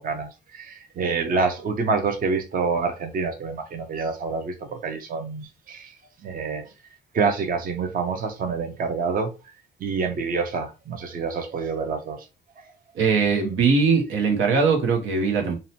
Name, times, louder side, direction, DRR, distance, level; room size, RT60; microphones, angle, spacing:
voice 1, 0.0-6.0 6.2-6.6 7.1-9.3 9.8-12.3, right 4 dB, 45° right, 0.6 m, -27 dB
voice 2, 13.0-15.6, right 5 dB, 80° right, 0.8 m, -21 dB
2.7 x 2.1 x 2.7 m
cardioid pair, 90°, 20 cm